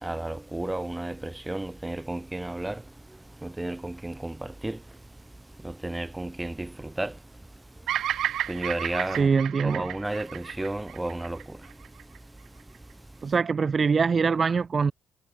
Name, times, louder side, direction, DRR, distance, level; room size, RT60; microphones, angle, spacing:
voice 1, 0.0-2.8 3.4-4.8 5.6-7.1 8.5-9.3 9.6-11.6, right 1 dB, 10° right, 3.8 m, -32 dB
Bird vocalization bird call bird song, 7.9-12.2, right 11 dB, 75° right, 3.0 m, -32 dB
voice 2, 9.2-9.8 13.2-14.9, right 5 dB, 40° right, 2.6 m, -23 dB
cardioid pair, 90°, 0 cm